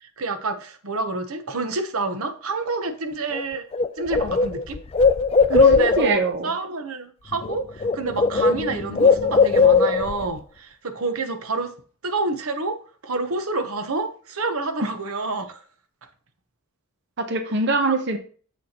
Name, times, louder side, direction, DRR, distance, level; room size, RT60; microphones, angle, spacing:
voice 1, 0.0-3.7 4.0-4.8 5.5-11.7 12.0-12.8 13.0-15.6 17.8-18.0, right 3 dB, 85° right, 0.9 m, -28 dB
Bird, 3.3-3.4 3.7-6.2 7.3-7.5 7.8-10.2, left 4 dB, 30° left, 0.3 m, -18 dB
voice 2, 5.5-6.5 17.2-18.2, right 3 dB, 55° right, 0.9 m, -23 dB
7.1 x 6.5 x 2.9 m
head